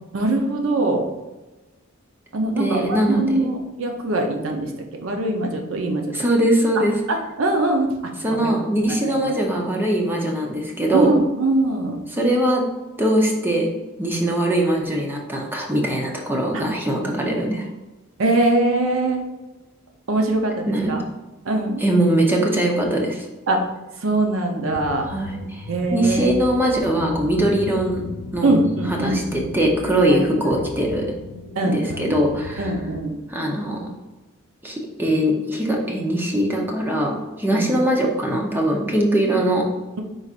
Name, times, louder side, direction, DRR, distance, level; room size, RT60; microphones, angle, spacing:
voice 1, 0.1-1.1 2.3-6.2 6.7-7.9 8.3-8.5 8.9-9.4 10.9-12.0 16.5-16.7 18.2-19.2 20.1-21.0 21.4-21.8 23.5-23.7 24.0-25.1 25.7-26.4 28.4-29.4 30.1-30.2 30.5-30.6 31.5-32.2 32.6-33.1 37.5-37.7, right 2 dB, 85° right, 3 dB, 0.7 m, -22 dB
voice 2, 2.5-3.5 6.1-6.9 8.2-11.1 12.2-12.7 13.0-13.7 14.0-17.6 20.7-20.9 21.8-23.3 25.1-28.0 28.3-28.5 29.0-31.1 31.6-32.6 33.3-33.9 34.6-39.6, right 1 dB, 10° right, -1 dB, 0.7 m, -21 dB
sound 1, 24.7-33.0, left 3 dB, 90° left, 0.5 m, -37 dB
4.8 x 4.0 x 2.5 m, 1.1 s
head